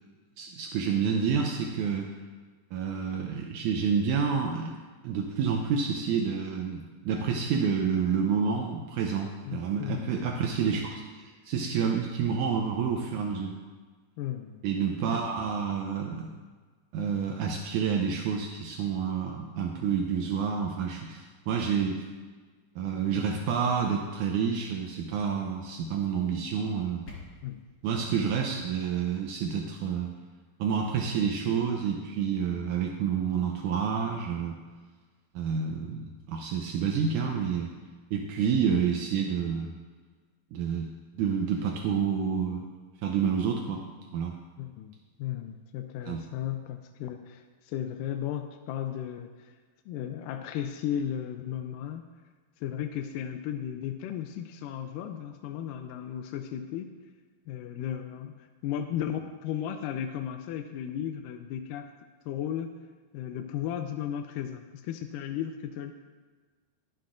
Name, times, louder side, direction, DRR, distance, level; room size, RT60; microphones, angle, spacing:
voice 1, 0.4-2.1 2.7-4.7 5.0-13.6 14.6-16.3 16.9-22.1 22.8-27.0 27.8-30.1 30.6-34.6 35.4-37.7 38.1-39.7 40.5-40.9 41.2-42.7 43.0-43.8 44.1-44.3 46.1-46.2, right 6 dB, 80° right, 2 dB, 1.8 m, -29 dB
voice 2, 9.5-10.1 10.5-10.6 14.2-14.6 27.4-27.7 44.6-49.5 49.9-52.0 52.6-56.9 57.5-61.9 62.3-62.7 63.1-65.9, left 10 dB, 80° left, 6 dB, 2.0 m, -35 dB
sound 1, 26.6-27.6, left 4 dB, 40° left, 1.7 m, -48 dB
22.0 x 7.7 x 2.5 m, 1.4 s
omnidirectional pair, 4.2 m